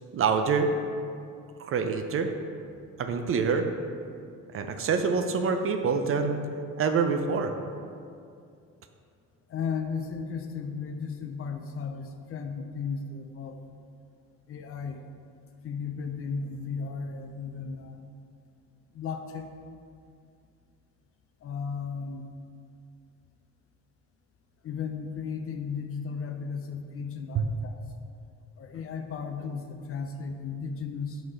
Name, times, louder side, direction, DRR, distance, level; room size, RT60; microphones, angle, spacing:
voice 1, 0.1-0.7 1.6-2.3 3.0-3.7 4.5-6.5 6.8-7.5 27.3-27.4, right 5 dB, 45° right, 6 dB, 0.5 m, -26 dB
voice 2, 9.5-13.6 14.5-15.0 15.6-18.1 18.9-19.5 21.4-22.3 24.6-27.8 28.6-31.2, left 5 dB, 45° left, 5 dB, 0.5 m, -35 dB
4.8 x 3.9 x 5.3 m, 2.4 s
cardioid pair, 105°, 32 cm